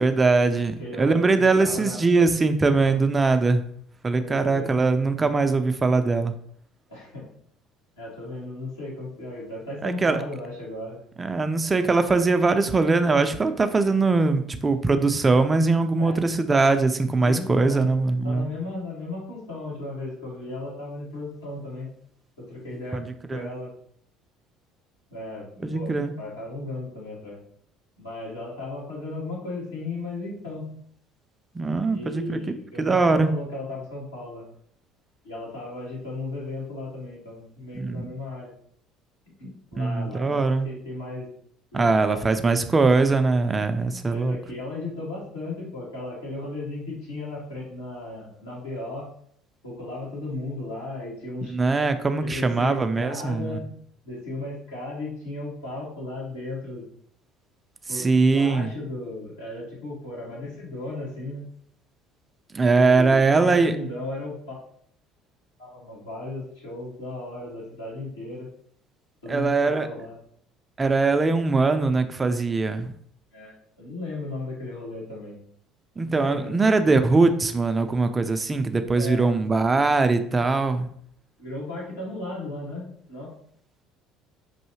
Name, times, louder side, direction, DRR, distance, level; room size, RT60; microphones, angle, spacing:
voice 1, 0.0-3.6 4.0-6.3 9.8-10.2 11.2-18.5 22.9-23.5 25.6-26.1 31.5-32.4 32.8-33.3 37.7-38.1 39.8-40.7 41.7-44.4 51.5-53.6 57.9-58.7 62.5-63.8 69.3-69.9 70.8-72.9 76.0-80.9, right 3 dB, 25° right, 8 dB, 0.4 m, -21 dB
voice 2, 0.8-1.3 1.6-2.0 2.9-3.0 4.1-4.7 6.9-7.2 8.0-11.0 16.0-16.2 17.2-17.8 18.2-21.9 22.4-23.0 23.3-23.7 25.1-27.4 28.0-30.6 31.9-34.4 35.2-38.5 39.4-41.3 41.7-42.3 44.1-49.1 49.6-51.6 52.2-53.7 54.0-56.9 57.9-61.4 62.7-64.6 65.6-68.5 69.2-70.2 73.3-75.4 76.0-76.8 78.9-79.2 81.4-83.3, left 2 dB, 85° left, -7 dB, 1.7 m, -35 dB
5.4 x 2.7 x 2.9 m, 0.65 s
figure-of-eight pair, 60°, 0 cm